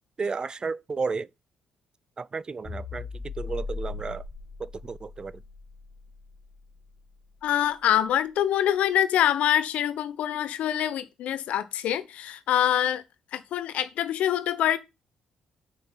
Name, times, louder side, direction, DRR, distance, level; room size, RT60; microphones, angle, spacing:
voice 1, 0.2-1.3 2.2-4.2 4.6-5.4, right 4 dB, 35° right, 0.5 m, -33 dB
sound 1, 2.7-7.1, left 4 dB, 40° left, 2.6 m, -39 dB
voice 2, 7.4-13.0 13.3-14.8, left 11 dB, 70° left, 1.0 m, -25 dB
8.6 x 6.0 x 5.9 m
hypercardioid pair, 50°, 2 cm